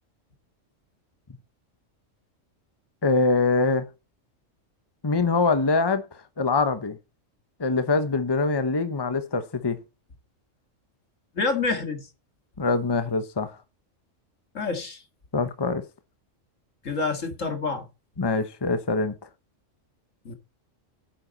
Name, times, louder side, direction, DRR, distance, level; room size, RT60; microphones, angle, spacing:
voice 1, 3.0-3.9 5.0-6.1 6.4-7.0 7.6-9.8 12.6-13.6 15.3-15.8 18.2-19.1, left 3 dB, 20° left, 1.0 m, -24 dB
voice 2, 11.3-12.1 14.5-15.0 16.8-17.9 20.3-20.4, left 4 dB, 75° left, 2.5 m, -27 dB
10.5 x 9.7 x 4.1 m
omnidirectional pair, 1.3 m